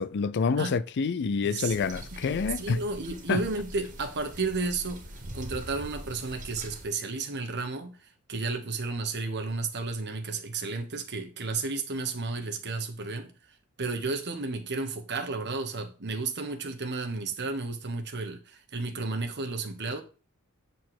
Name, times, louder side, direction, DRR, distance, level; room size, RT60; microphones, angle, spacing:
voice 1, 0.0-2.8 3.3-3.4, left 5 dB, 50° left, 0.4 m, -27 dB
voice 2, 1.4-1.7 2.3-5.0 5.3-13.3 13.8-20.0, right 3 dB, 50° right, 1.3 m, -32 dB
sound 1, 1.6-6.9, right 1 dB, 35° right, 1.8 m, -43 dB
8.0 x 4.3 x 6.0 m
head